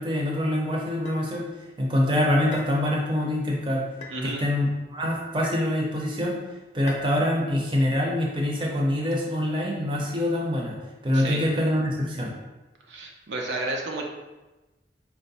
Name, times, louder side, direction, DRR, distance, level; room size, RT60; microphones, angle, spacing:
voice 1, 0.0-1.4 1.8-3.8 4.2-6.4 6.7-10.8 11.0-12.3, left 1 dB, 25° right, -2 dB, 0.6 m, -25 dB
sound 1, 1.1-1.2 2.5-2.8 4.0-4.2 5.4-5.7 6.9-7.1, left 3 dB, 40° left, 0.4 m, -40 dB
voice 2, 4.1-4.4 11.1-11.4 12.9-14.0, right 2 dB, 90° right, 0 dB, 0.6 m, -31 dB
4.5 x 2.1 x 3.9 m, 1.1 s
head